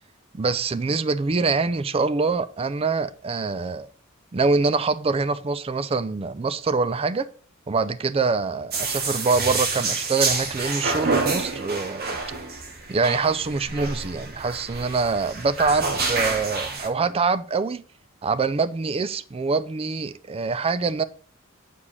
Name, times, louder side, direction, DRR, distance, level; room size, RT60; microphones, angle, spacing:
voice 1, 0.3-3.9 4.3-7.3 7.7-12.2 12.9-17.8 18.2-21.0, right 4 dB, 30° right, 0.4 m, -24 dB
sound 1, 8.7-16.9, right 4 dB, 50° right, 1.5 m, -28 dB
8.5 x 4.9 x 5.3 m
head